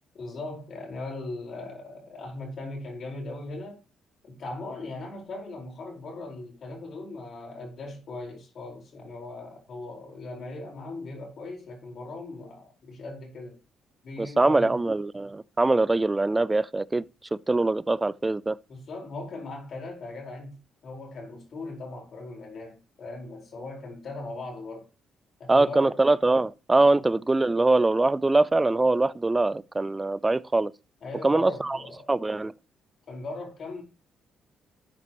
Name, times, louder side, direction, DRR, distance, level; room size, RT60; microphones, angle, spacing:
voice 1, 0.1-3.8 4.2-13.6 14.0-14.8 18.7-24.9 25.4-25.9 26.9-27.0 31.0-32.1 33.1-33.8, left 2 dB, 55° left, 4.7 m, -39 dB
voice 2, 14.2-17.1 17.5-18.6 25.5-30.7 31.2-31.8 32.1-32.5, right 2 dB, 20° right, 0.5 m, -23 dB
12.0 x 8.3 x 3.1 m
cardioid pair, 90°, 0 cm